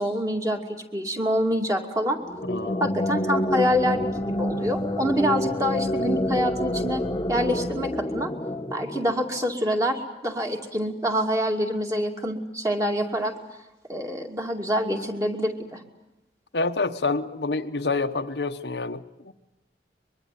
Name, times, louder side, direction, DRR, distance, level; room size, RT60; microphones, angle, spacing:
voice 1, 0.0-2.2 2.8-8.3 8.7-13.3 13.9-15.8, equal, 20° right, 3 dB, 2.6 m, -26 dB
sound 1, 2.2-9.6, left 1 dB, 20° left, 0.9 m, -28 dB
voice 2, 2.5-2.9 16.5-19.3, left 3 dB, 70° left, 8 dB, 1.0 m, -28 dB
24.0 x 22.5 x 9.3 m, 0.95 s
head